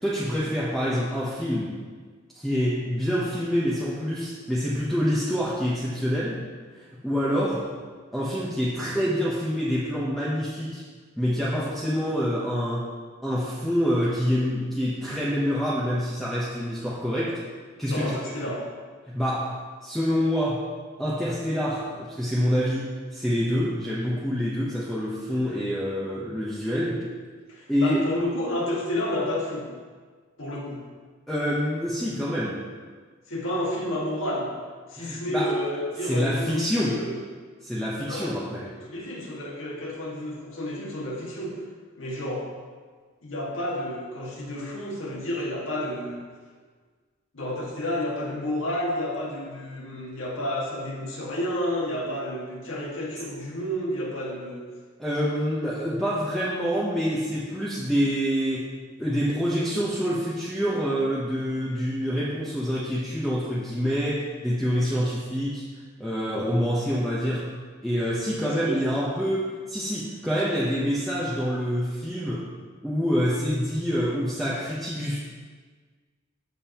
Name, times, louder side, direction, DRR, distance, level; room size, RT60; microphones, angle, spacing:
voice 1, 0.0-1.7 2.3-6.4 6.8-7.7 8.1-10.8 11.2-12.9 13.2-17.4 17.8-18.1 18.4-18.5 19.1-19.6 19.8-20.6 21.0-27.0 27.7-28.0 31.3-32.6 35.0-35.6 36.1-37.0 37.6-38.6 55.0-58.7 59.0-65.6 66.0-67.5 67.8-72.5 72.8-75.2, equal, ahead, -7 dB, 1.0 m, -26 dB
voice 2, 17.8-18.6 27.5-29.7 30.4-30.8 33.3-34.5 34.9-37.2 38.1-38.3 38.9-41.6 42.0-42.5 43.2-46.2 47.3-54.7 68.4-68.8, left 1 dB, 70° left, -3 dB, 1.9 m, -30 dB
14.0 x 5.4 x 3.0 m, 1.5 s
head